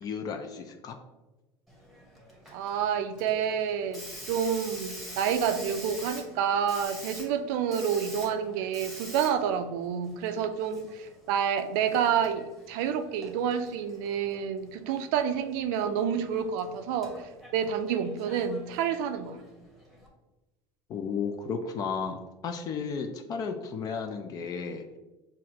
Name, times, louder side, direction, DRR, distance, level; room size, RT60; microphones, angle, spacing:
voice 1, 0.0-1.0 20.9-25.0, left 5 dB, 40° left, 5 dB, 0.4 m, -34 dB
Hiss, 1.7-20.1, equal, ahead, 1.0 m, -47 dB
voice 2, 2.5-17.1 17.5-19.4, right 8 dB, 75° right, 9 dB, 0.4 m, -29 dB
5.8 x 2.5 x 2.8 m, 1.1 s
supercardioid pair, 120°, 10 cm